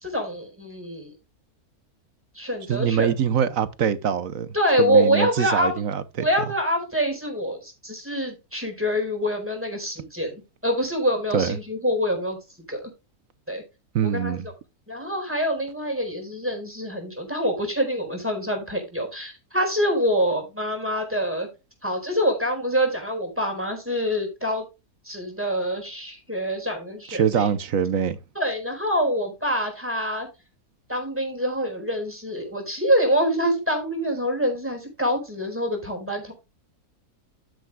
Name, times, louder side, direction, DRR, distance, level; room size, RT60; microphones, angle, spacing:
voice 1, 0.0-1.1 2.3-3.1 4.5-5.8 6.2-12.4 12.7-12.9 13.5-13.6 14.0-14.4 14.9-21.5 21.8-24.6 25.0-27.5 28.3-30.3 30.9-36.3, equal, 10° right, 4.4 m, -25 dB
voice 2, 2.7-6.3 11.3-11.6 13.9-14.5 27.1-28.2, right 7 dB, 65° right, 1.2 m, -24 dB
12.5 x 9.3 x 2.2 m
omnidirectional pair, 1.6 m